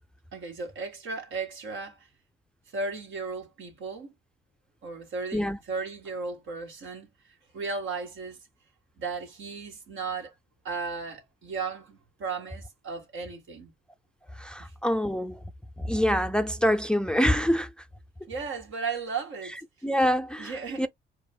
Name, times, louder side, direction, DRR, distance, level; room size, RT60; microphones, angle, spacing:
voice 1, 0.3-2.0 2.7-4.1 4.8-7.1 7.5-8.4 9.0-10.3 10.6-13.7 14.6-14.7 18.3-19.6 20.4-20.9, right 4 dB, 80° right, 2.1 m, -35 dB
voice 2, 14.3-15.4 15.8-17.9 19.8-20.9, equal, 5° left, 0.4 m, -26 dB
4.7 x 2.5 x 2.3 m
cardioid pair, 90°, 20 cm